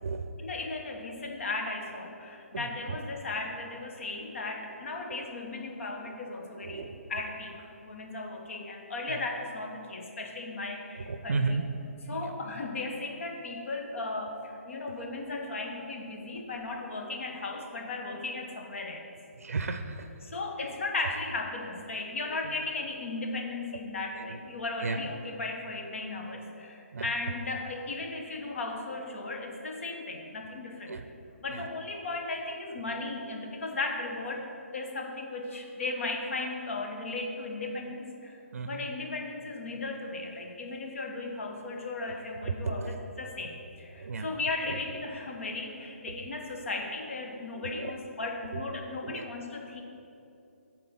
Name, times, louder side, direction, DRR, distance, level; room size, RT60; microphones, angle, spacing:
voice 1, 0.4-11.6 12.1-19.0 20.2-30.9 31.4-49.8, left 3 dB, 60° left, 2 dB, 1.1 m, -36 dB
voice 2, 2.5-3.0 5.1-5.3 6.5-7.0 9.1-9.2 11.1-11.6 12.1-12.4 17.0-17.1 19.4-20.1 22.4-22.5 24.2-24.4 24.8-25.0 26.9-27.1 30.9-31.0 31.5-31.7 38.5-38.9 42.1-42.2 42.4-43.0 44.0-44.3 44.6-44.8 47.5-47.9 48.5-48.6 49.0-49.2, right 4 dB, 75° right, 7 dB, 0.5 m, -34 dB
6.6 x 4.1 x 5.7 m, 2.7 s
hypercardioid pair, 150°, 8 cm